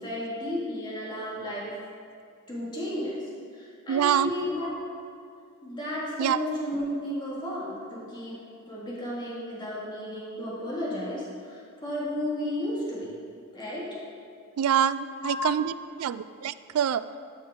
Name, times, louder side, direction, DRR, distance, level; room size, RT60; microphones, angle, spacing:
voice 1, 0.0-1.7 2.5-4.8 5.6-8.4 8.7-13.1 13.5-13.9 15.2-15.5, left 1 dB, 20° left, -6 dB, 1.9 m, -33 dB
voice 2, 3.9-4.3 6.2-6.4 14.6-15.7 16.0-17.0, right 9 dB, 85° right, 15 dB, 0.3 m, -25 dB
12.5 x 5.4 x 3.7 m, 2.3 s
head